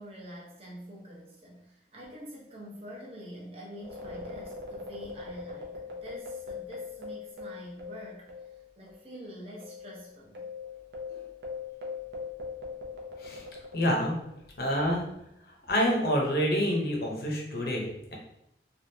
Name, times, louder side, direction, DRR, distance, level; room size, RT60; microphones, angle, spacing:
voice 1, 0.0-8.3 8.8-10.4, equal, 35° right, -4 dB, 0.8 m, -46 dB
sound 1, 3.8-8.6 8.9-9.0 9.6-14.4, left 4 dB, 75° right, 0.6 m, -41 dB
voice 2, 13.7-14.1 14.6-15.1 15.7-18.2, equal, 60° left, -1 dB, 0.7 m, -27 dB
3.4 x 2.3 x 2.7 m, 0.79 s
head